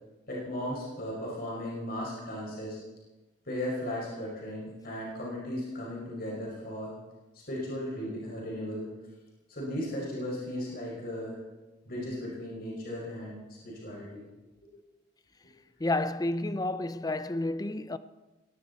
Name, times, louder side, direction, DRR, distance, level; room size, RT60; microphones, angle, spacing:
voice 1, 0.3-2.8 3.5-6.9 7.5-8.9 9.5-11.4 11.9-14.2, left 1 dB, 55° left, 5.5 m, -36 dB
voice 2, 15.8-18.0, left 2 dB, 20° left, 0.5 m, -30 dB
19.0 x 18.0 x 4.1 m
head